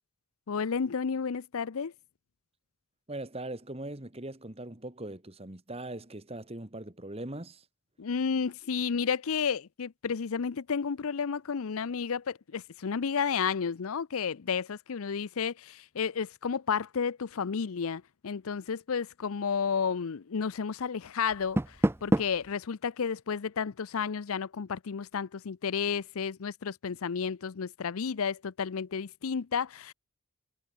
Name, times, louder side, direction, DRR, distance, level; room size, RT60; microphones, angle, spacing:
voice 1, 0.5-1.9 8.0-29.9, left 6 dB, 75° left, 0.6 m, -32 dB
voice 2, 3.1-7.7, right 1 dB, 25° right, 1.7 m, -40 dB
Door, 21.3-22.5, right 1 dB, 10° right, 0.5 m, -28 dB
head